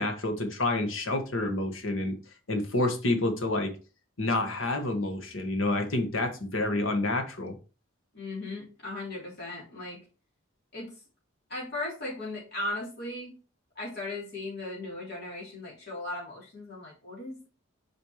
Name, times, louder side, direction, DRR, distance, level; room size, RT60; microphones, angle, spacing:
voice 1, 0.0-2.1 2.5-3.7 4.2-7.5, left 2 dB, 75° left, 5 dB, 1.6 m, -28 dB
voice 2, 8.1-10.0 10.7-10.9 11.5-13.3 13.7-17.5, left 2 dB, 50° left, -5 dB, 3.4 m, -37 dB
8.5 x 5.0 x 3.1 m, 0.35 s
head